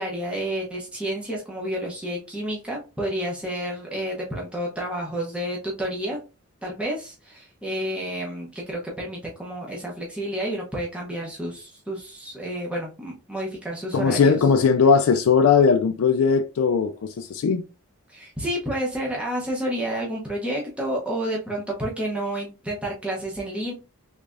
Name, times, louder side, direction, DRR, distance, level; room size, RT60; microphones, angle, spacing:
voice 1, 0.0-6.2 6.6-14.4 18.1-23.7, right 1 dB, 5° right, 0.8 m, -30 dB
voice 2, 13.9-17.6, left 5 dB, 65° left, 0.4 m, -19 dB
3.4 x 3.2 x 2.5 m
head